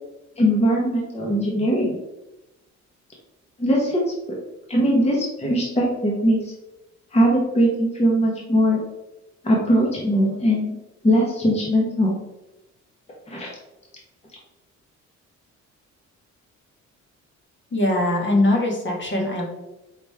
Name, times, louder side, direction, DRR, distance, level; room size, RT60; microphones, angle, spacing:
voice 1, 0.4-1.9 3.6-4.0 4.7-6.5 7.1-8.8 9.4-10.8 11.0-12.2 13.3-13.5, equal, 20° left, -2 dB, 1.0 m, -20 dB
voice 2, 17.7-19.5, left 1 dB, 40° left, 0 dB, 1.3 m, -21 dB
5.0 x 3.2 x 3.4 m, 0.97 s
cardioid pair, 90°, 30 cm